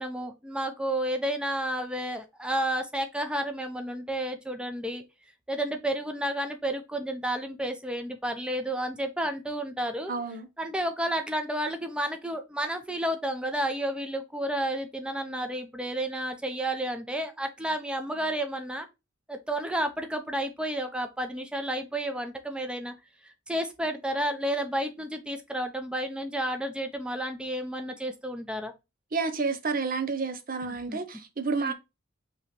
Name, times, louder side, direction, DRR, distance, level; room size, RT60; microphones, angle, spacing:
voice 1, 0.0-5.0 5.5-10.1 10.6-18.9 19.3-22.9 23.5-28.7 30.9-31.0 31.6-31.7, right 1 dB, 5° right, 0.7 m, -31 dB
voice 2, 10.1-10.5 29.1-31.7, right 4 dB, 45° right, 0.8 m, -30 dB
5.3 x 3.0 x 3.1 m
head